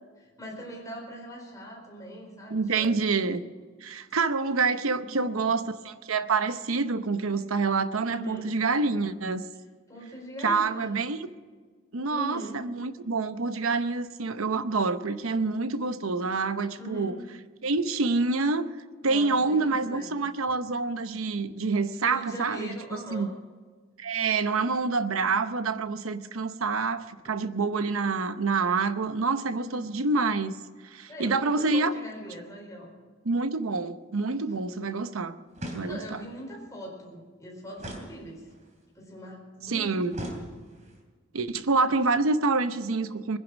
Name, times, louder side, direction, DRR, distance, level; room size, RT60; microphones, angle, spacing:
voice 1, 0.2-3.0 5.0-5.5 8.1-8.5 9.9-11.0 12.1-12.6 16.8-17.2 19.0-20.1 22.0-23.3 27.2-27.4 29.5-29.9 31.1-32.9 35.8-38.5 38.9-40.5, equal, 15° left, -2 dB, 4.4 m, -41 dB
voice 2, 2.5-3.4 3.8-9.5 10.4-11.3 11.9-17.2 17.6-18.7 19.0-22.8 23.1-23.3 24.0-30.5 30.9-31.9 33.2-35.4 35.7-36.2 39.7-40.2 41.3-43.4, right 4 dB, 85° right, 12 dB, 0.8 m, -27 dB
sound 1, 35.5-36.3 37.8-38.7 40.1-41.0, equal, 35° right, 3.0 m, -40 dB
21.0 x 10.5 x 6.2 m, 1.5 s
head